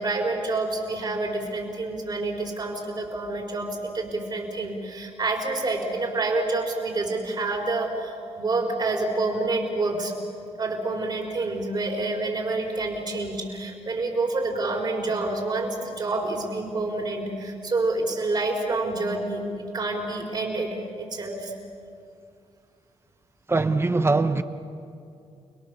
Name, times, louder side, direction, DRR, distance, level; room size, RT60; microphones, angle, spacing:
voice 1, 0.0-10.1 10.6-21.5, right 2 dB, 40° right, 0 dB, 4.6 m, -28 dB
voice 2, 23.5-24.4, right 3 dB, 20° right, 10 dB, 0.8 m, -22 dB
29.5 x 21.5 x 7.1 m, 2.4 s
wide cardioid pair, 135°, 11 cm